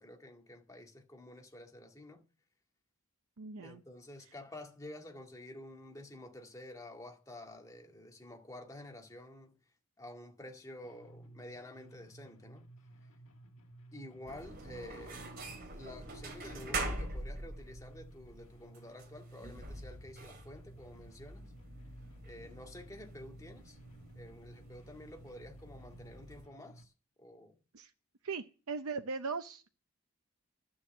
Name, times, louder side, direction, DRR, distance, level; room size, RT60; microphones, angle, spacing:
voice 1, 0.0-2.2 3.6-9.6 10.0-12.6 13.9-15.3 15.7-21.5 22.2-23.8 24.1-26.9 27.2-27.6, left 1 dB, 15° left, 2.1 m, -50 dB
voice 2, 3.4-3.8 27.7-27.9 28.2-29.7, right 4 dB, 80° right, 0.7 m, -39 dB
sound 1, 10.8-26.8, right 2 dB, 90° left, 1.4 m, -56 dB
sound 2, 14.3-26.5, right 2 dB, 45° right, 3.2 m, -45 dB
12.5 x 7.1 x 7.3 m
head